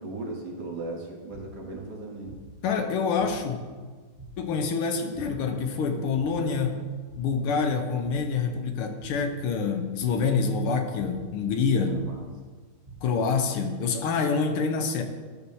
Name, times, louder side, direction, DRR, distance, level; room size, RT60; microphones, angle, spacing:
voice 1, 0.0-2.4 11.9-12.3, right 2 dB, 55° right, -1 dB, 1.6 m, -37 dB
sound 1, 0.6-0.7 1.3-1.7 2.3-2.7 3.2-3.6 4.2-4.6 5.1-5.6 6.1-6.6 7.1-7.5 8.0-8.4 9.0-9.4 10.0-10.4 11.0-11.4 11.9-12.4 12.9-13.3, right 3 dB, 35° right, 0.6 m, -46 dB
voice 2, 2.6-3.6 4.4-6.8 7.2-12.0 13.0-15.0, left 5 dB, 90° left, 6 dB, 1.7 m, -26 dB
12.5 x 6.9 x 2.7 m, 1.4 s
omnidirectional pair, 2.4 m